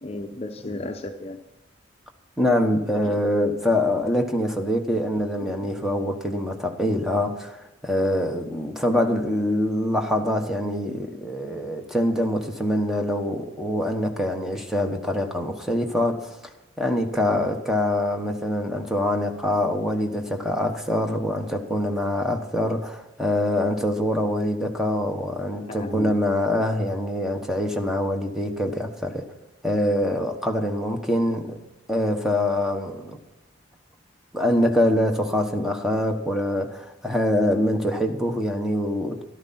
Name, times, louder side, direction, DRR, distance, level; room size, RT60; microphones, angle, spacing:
voice 1, 0.0-1.4 3.0-3.3 5.4-5.5 25.7-26.1, left 2 dB, 35° left, 0.7 m, -34 dB
voice 2, 2.4-16.5 16.8-29.3 29.6-31.6 31.9-33.2 34.3-39.2, left 1 dB, ahead, 1.2 m, -24 dB
14.0 x 12.5 x 4.3 m
head